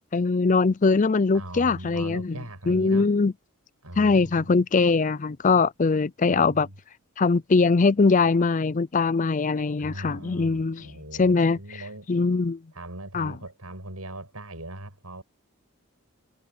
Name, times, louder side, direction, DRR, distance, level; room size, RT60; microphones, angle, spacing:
voice 1, 0.1-2.4 2.7-3.3 4.0-6.7 7.2-10.8 11.2-11.6 12.1-12.6 13.1-13.3, left 4 dB, 35° left, 0.5 m, -22 dB
voice 2, 1.3-3.1 3.8-4.6 6.3-6.7 9.8-12.1 12.7-15.2, right 1 dB, 80° right, 7.2 m, -40 dB
head